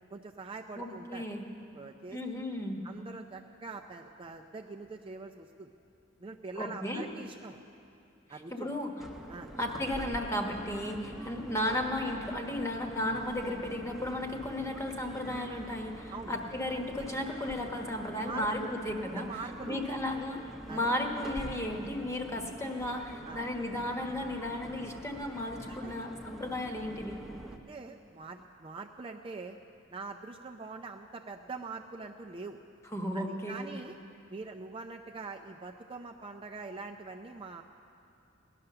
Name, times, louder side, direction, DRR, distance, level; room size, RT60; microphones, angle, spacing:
voice 1, 0.1-1.2 1.7-2.2 2.8-5.7 6.2-7.6 8.3-8.7 9.3-9.5 16.1-16.3 17.0-17.1 18.3-18.7 19.0-20.0 20.7-20.9 23.3-23.4 25.7-25.9 27.5-29.6 29.9-32.6 33.1-34.0 34.3-37.6, right 4 dB, 25° right, 2 dB, 0.5 m, -43 dB
voice 2, 0.8-1.5 2.1-2.8 6.6-7.1 8.3-8.9 9.6-19.3 19.6-20.4 20.7-27.2 32.9-33.7, left 1 dB, 15° left, 2 dB, 1.2 m, -34 dB
sound 1, 9.0-27.6, right 1 dB, ahead, 0.9 m, -45 dB
17.5 x 11.0 x 6.7 m, 2.6 s
head